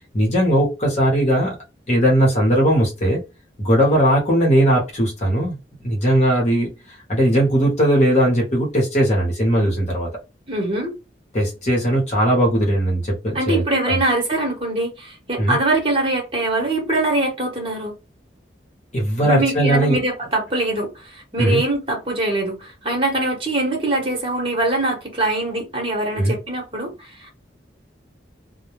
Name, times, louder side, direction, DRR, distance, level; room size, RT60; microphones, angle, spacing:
voice 1, 0.1-1.6 1.9-3.2 3.6-5.6 5.8-10.1 11.3-14.0 15.4-15.6 18.9-20.0 21.4-21.6 26.1-26.3, right 1 dB, 40° left, 0.9 m, -18 dB
voice 2, 10.5-10.9 13.3-17.9 19.2-27.3, right 2 dB, 30° right, 1.1 m, -23 dB
2.2 x 2.1 x 3.0 m
head